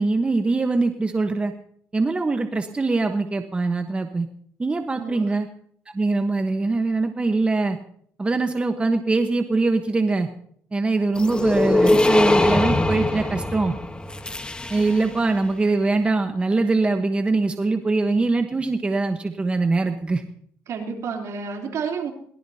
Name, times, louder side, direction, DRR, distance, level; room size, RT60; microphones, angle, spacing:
voice 1, 0.0-1.5 1.9-4.3 4.6-5.5 5.9-7.8 8.2-10.3 10.7-13.7 14.7-20.2, right 3 dB, 20° right, 5 dB, 1.2 m, -22 dB
voice 2, 4.9-5.4 20.7-22.1, right 6 dB, 65° right, 1 dB, 3.5 m, -30 dB
sound 1, 11.2-15.2, left 2 dB, 15° left, 1.3 m, -22 dB
22.5 x 18.5 x 2.9 m, 0.63 s
cardioid pair, 105°, 6 cm